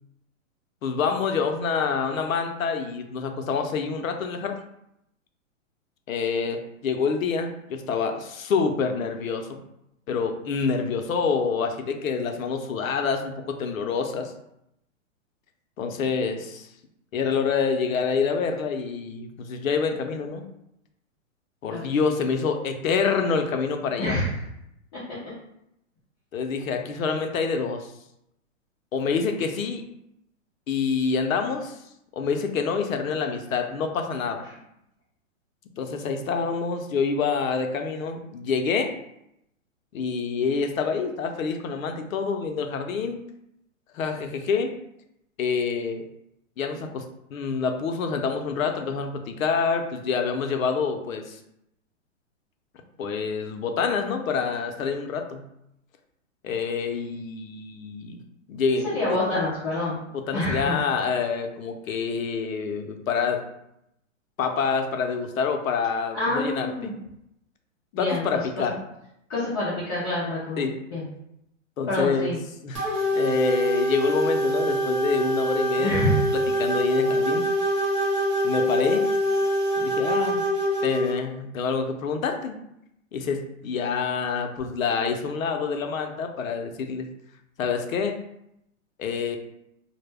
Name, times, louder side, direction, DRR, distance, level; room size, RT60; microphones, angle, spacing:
voice 1, 0.8-4.6 6.1-9.6 10.1-14.3 15.8-16.7 17.1-20.4 21.6-24.2 26.3-27.9 28.9-29.8 30.7-31.8 32.1-34.4 35.8-38.9 39.9-43.2 43.9-44.7 45.4-46.0 46.6-47.0 47.3-51.4 53.0-55.4 56.4-58.2 58.5-59.2 60.1-63.4 64.4-66.9 68.0-68.8 70.6-70.8 71.8-72.3 72.6-72.8 73.1-77.4 78.4-79.1 79.8-80.4 80.8-82.6 83.1-87.1 87.6-88.2 89.0-89.4, left 5 dB, 85° left, 5 dB, 0.6 m, -27 dB
voice 2, 24.0-24.3 58.8-60.0 60.3-60.8 66.1-66.9 67.9-68.2 69.3-70.6 70.9-71.0 71.9-72.4 75.8-76.2, left 1 dB, 20° left, -10 dB, 0.5 m, -26 dB
sound 1, 72.7-81.1, equal, 25° right, 0.6 m, -24 dB
2.1 x 2.1 x 3.2 m, 0.80 s
hypercardioid pair, 150°, 39 cm